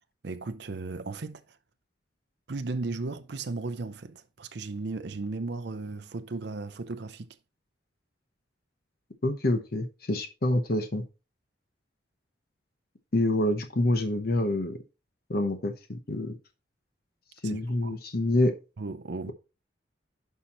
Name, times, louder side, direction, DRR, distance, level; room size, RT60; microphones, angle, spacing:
voice 1, 0.2-1.6 2.5-7.4 17.4-18.0 18.8-19.3, right 3 dB, 60° right, 0.6 m, -36 dB
voice 2, 9.2-11.0 13.1-14.8 15.3-16.4 17.4-18.5, left 1 dB, 50° left, 0.9 m, -27 dB
10.5 x 5.7 x 3.0 m
head